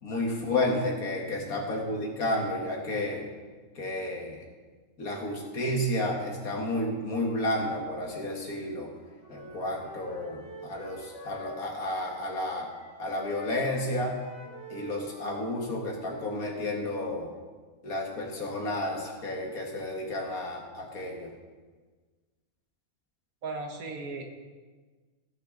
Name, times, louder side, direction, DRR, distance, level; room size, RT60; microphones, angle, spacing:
voice 1, 0.0-3.3 3.8-4.4 5.0-8.9 9.3-12.7 13.0-14.2 14.7-17.3 17.8-21.3, left 1 dB, 80° left, 0 dB, 2.1 m, -31 dB
Wind instrument woodwind instrument, 8.8-12.4 12.7-16.6, equal, 50° left, 2.4 m, -48 dB
voice 2, 23.4-24.2, right 3 dB, 75° right, 3 dB, 1.7 m, -37 dB
16.5 x 6.4 x 3.8 m, 1.4 s
omnidirectional pair, 1.5 m